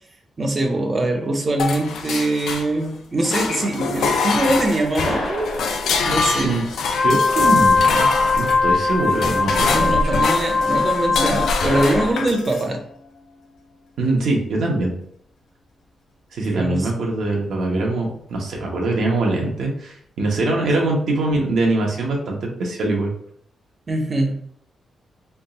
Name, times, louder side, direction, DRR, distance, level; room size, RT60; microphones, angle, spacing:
voice 1, 0.4-5.6 6.0-6.6 9.7-12.8 16.5-16.9 20.8-20.9 23.9-24.3, right 1 dB, 25° right, 3 dB, 0.6 m, -23 dB
sound 1, 1.6-2.9 3.2-12.7, left 4 dB, 90° left, 0.5 m, -25 dB
sound 2, 4.3-12.1, left 1 dB, 70° left, 1.1 m, -30 dB
Wind instrument woodwind instrument, 6.8-12.1, left 4 dB, 35° left, 0.4 m, -20 dB
voice 2, 7.0-8.1 8.4-10.0 14.0-14.9 16.3-23.1, right 2 dB, 70° right, 0 dB, 1.0 m, -22 dB
3.5 x 2.4 x 4.0 m, 0.67 s
wide cardioid pair, 175°, 0 cm